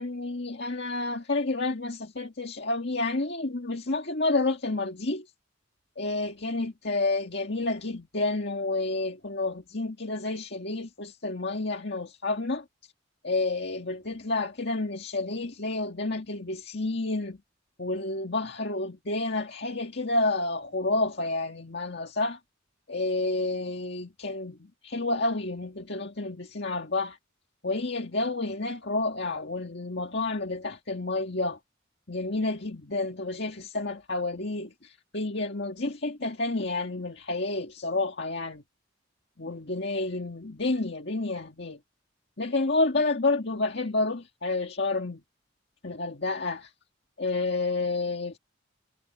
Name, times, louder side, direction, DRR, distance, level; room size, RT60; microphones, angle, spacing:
voice 1, 0.0-5.3 6.0-12.6 13.2-17.4 17.8-22.4 22.9-27.2 27.6-31.6 32.1-38.6 39.4-41.8 42.4-45.2 45.8-46.7 47.2-48.4, left 2 dB, 60° left, 1.9 m, -30 dB
head